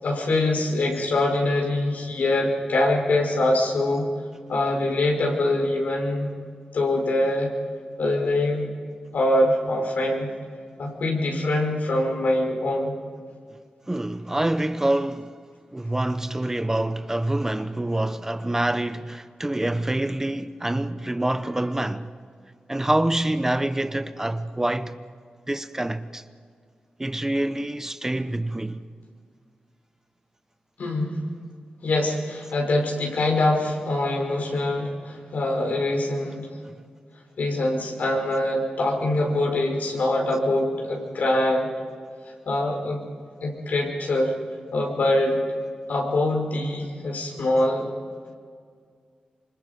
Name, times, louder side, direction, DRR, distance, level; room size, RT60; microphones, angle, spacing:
voice 1, 0.0-4.1 4.5-6.3 6.7-7.5 8.0-8.7 9.1-10.3 10.8-12.9 30.8-31.2 31.8-36.5 37.4-41.7 42.5-43.0 43.4-44.3 44.7-45.4 45.9-47.9, left 1 dB, 80° left, 5.3 m, -24 dB
voice 2, 13.9-15.3 15.7-22.1 22.7-25.0 25.5-26.2 27.0-28.8, right 1 dB, 15° right, 0.9 m, -26 dB
27.0 x 25.0 x 5.3 m
cardioid pair, 80°, 3 cm